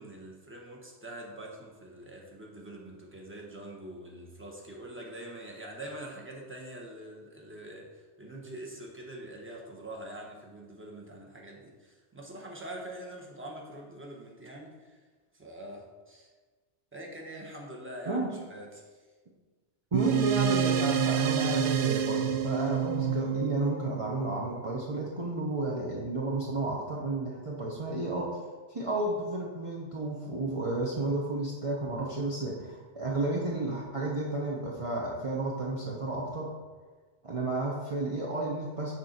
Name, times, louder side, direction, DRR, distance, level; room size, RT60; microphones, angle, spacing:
voice 1, 0.0-15.0 15.3-16.3 16.9-19.0, right 1 dB, 10° right, -1 dB, 1.2 m, -44 dB
voice 2, 19.9-28.4 28.7-36.5 37.2-38.9, right 2 dB, 30° right, -4 dB, 0.9 m, -32 dB
sound 1, 19.9-24.7, right 8 dB, 60° right, 0.7 m, -28 dB
6.7 x 4.4 x 6.6 m, 1.4 s
omnidirectional pair, 1.2 m